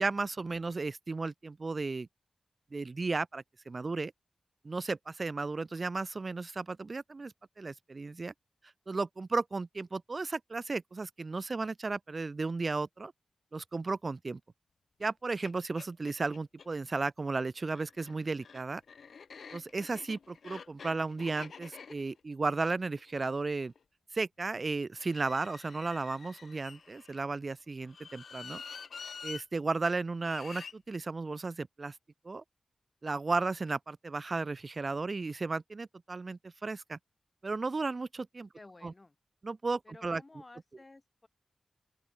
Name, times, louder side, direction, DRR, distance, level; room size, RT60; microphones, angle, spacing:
voice 1, 0.0-2.1 2.7-4.1 4.6-8.3 8.9-13.1 13.5-14.4 15.0-18.8 19.5-23.7 24.1-28.6 29.2-32.0 32.2-32.4 33.0-37.0 37.4-38.5 38.8-38.9 39.4-40.2, right 3 dB, 50° right, 0.5 m, -34 dB
sound 1, 15.0-15.1 15.4-15.5 15.8-16.7 17.6-23.8 24.9-27.2 27.8-29.4 30.2-30.7, left 6 dB, 80° left, 0.4 m, -48 dB
voice 2, 38.5-39.2 39.8-41.3, left 2 dB, 35° left, 6.5 m, -54 dB
open air
cardioid pair, 45°, 0 cm